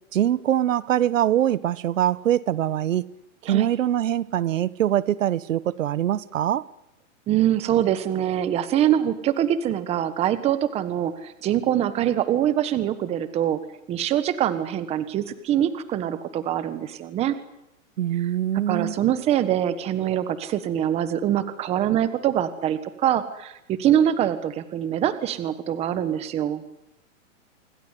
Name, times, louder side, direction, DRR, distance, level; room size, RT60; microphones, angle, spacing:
voice 1, 0.1-3.0 3.4-6.6 18.0-19.0, right 11 dB, 75° right, 1.2 m, -23 dB
voice 2, 7.3-13.6 13.9-17.3 18.7-26.6, right 11 dB, 15° right, 1.4 m, -24 dB
27.0 x 24.0 x 8.3 m
hypercardioid pair, 165°, 40 cm